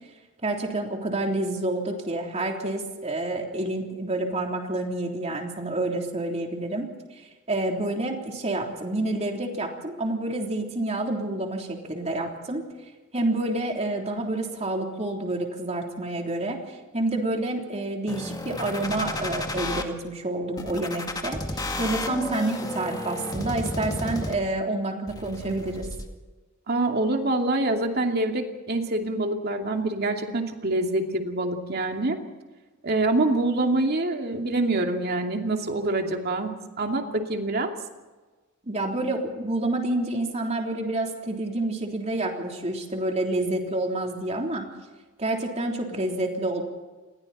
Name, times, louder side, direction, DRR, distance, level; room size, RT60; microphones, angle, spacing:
voice 1, 0.4-6.9 7.5-12.6 13.1-25.9 38.6-44.7 45.2-46.6, right 2 dB, 30° right, 1 dB, 3.5 m, -28 dB
sound 1, 18.1-19.8 20.6-24.6 25.1-26.1, left 1 dB, 20° left, 2.0 m, -32 dB
voice 2, 26.7-32.2 32.8-37.7, right 2 dB, 50° right, 3 dB, 2.6 m, -25 dB
28.5 x 21.5 x 4.3 m, 1.3 s
head